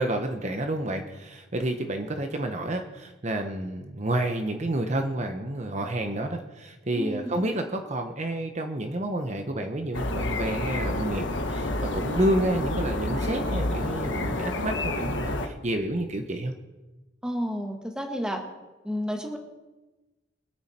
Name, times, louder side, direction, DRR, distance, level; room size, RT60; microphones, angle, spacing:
voice 1, 0.0-16.5, right 1 dB, 40° right, 5 dB, 1.0 m, -29 dB
voice 2, 6.9-7.3 17.2-18.4 18.8-19.4, equal, 5° right, 3 dB, 1.5 m, -31 dB
sound 1, 9.9-15.5, left 1 dB, 75° left, 1.4 m, -29 dB
23.5 x 9.4 x 4.4 m, 1.1 s
head